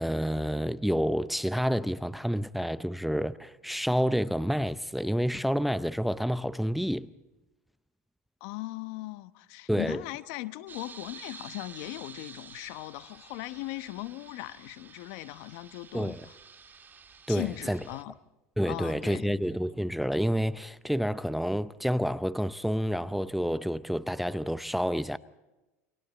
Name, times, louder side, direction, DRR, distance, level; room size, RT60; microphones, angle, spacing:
voice 1, 0.0-7.1 9.7-10.0 15.9-16.3 17.3-17.8 18.6-25.2, equal, ahead, 0.7 m, -29 dB
voice 2, 8.4-16.3 17.3-18.1 18.6-19.5, left 19 dB, 60° left, 1.0 m, -39 dB
(un)peaceful Sunday, 10.7-18.0, right 6 dB, 25° right, 2.0 m, -50 dB
29.5 x 25.0 x 4.0 m
hypercardioid pair, 90°, 8 cm